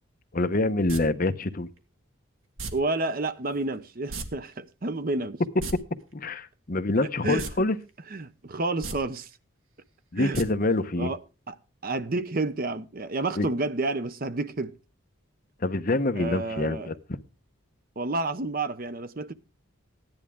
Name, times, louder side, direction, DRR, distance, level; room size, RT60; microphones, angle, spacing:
voice 1, 0.3-1.7 5.7-5.8 6.1-7.8 10.1-11.1 13.4-13.5 15.6-16.9, left 2 dB, 40° left, 0.8 m, -26 dB
sound 1, 0.9-1.0 2.6-2.7 4.1-4.3 4.5-4.6 5.5-5.7 7.4-7.5 7.9-8.0 8.7-9.0 10.3-10.4 10.8-10.9, right 3 dB, 75° right, 1.7 m, -34 dB
voice 2, 2.7-5.4 7.2-7.5 8.1-9.3 10.2-10.4 11.0-11.2 11.5-11.6 11.8-14.7 16.2-16.9 18.0-19.3, right 2 dB, 45° right, 0.7 m, -30 dB
15.5 x 10.5 x 3.6 m
head